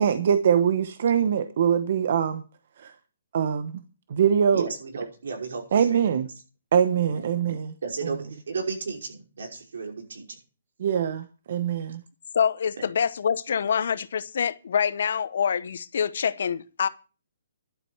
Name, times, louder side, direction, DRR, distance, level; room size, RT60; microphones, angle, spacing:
voice 1, 0.0-2.4 2.8-2.9 3.3-3.8 4.1-4.7 5.7-6.3 6.7-7.7 10.8-12.0, right 8 dB, 55° right, 1.0 m, -23 dB
voice 2, 4.5-5.6 5.9-6.1 7.0-7.2 7.8-10.4 12.8-12.9, right 4 dB, 85° right, 5.5 m, -34 dB
voice 3, 12.3-16.9, left 7 dB, 65° left, 0.9 m, -26 dB
11.5 x 7.7 x 7.8 m
hypercardioid pair, 165°, 0 cm